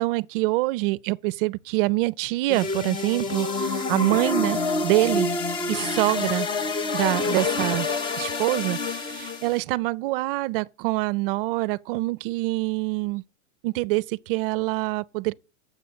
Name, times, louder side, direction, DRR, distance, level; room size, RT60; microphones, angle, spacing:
voice 1, 0.0-5.3 5.7-6.5 6.9-7.9 8.2-13.2 13.6-15.3, right 21 dB, 45° right, 0.4 m, -25 dB
sound 1, 2.5-9.6, left 3 dB, 15° left, 0.4 m, -27 dB
7.1 x 6.6 x 7.9 m
supercardioid pair, 145°, 39 cm